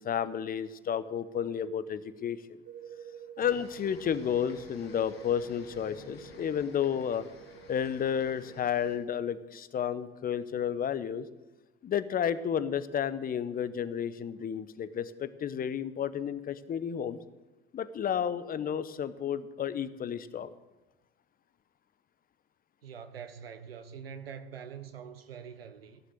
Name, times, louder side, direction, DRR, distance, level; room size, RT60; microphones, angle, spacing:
voice 1, 0.0-2.4 3.4-7.2 7.7-11.2 11.8-17.2 17.7-20.5, left 8 dB, 30° left, 0.9 m, -32 dB
sound 1, 2.6-9.5, right 9 dB, 55° right, 1.4 m, -49 dB
sound 2, 3.4-9.0, left 4 dB, 80° left, 2.1 m, -53 dB
voice 2, 22.8-26.0, right 7 dB, 75° right, 1.2 m, -44 dB
17.0 x 11.5 x 6.7 m
figure-of-eight pair, 70°, 29 cm